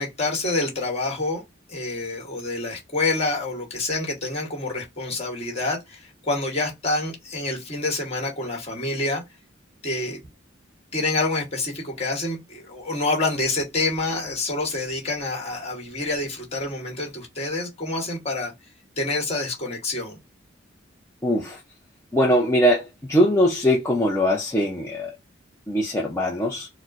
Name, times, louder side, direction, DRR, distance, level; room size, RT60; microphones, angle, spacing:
voice 1, 0.0-1.4 1.7-9.2 9.8-10.2 10.9-18.5 19.0-20.2, left 2 dB, 30° left, 1.4 m, -27 dB
voice 2, 21.2-21.6 22.1-25.1 25.7-26.7, equal, 15° left, 0.5 m, -21 dB
4.1 x 2.1 x 2.4 m
head